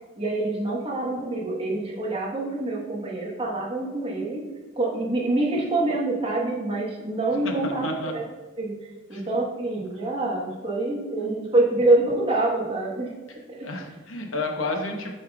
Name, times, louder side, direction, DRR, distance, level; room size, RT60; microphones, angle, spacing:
voice 1, 0.2-4.4 4.8-8.2 8.6-8.8 9.1-13.1 13.5-13.7, right 2 dB, 30° right, -2 dB, 1.2 m, -26 dB
voice 2, 7.4-8.1 9.1-9.2 13.6-15.1, left 2 dB, 75° left, 3 dB, 0.9 m, -30 dB
8.2 x 5.4 x 2.3 m, 1.3 s
head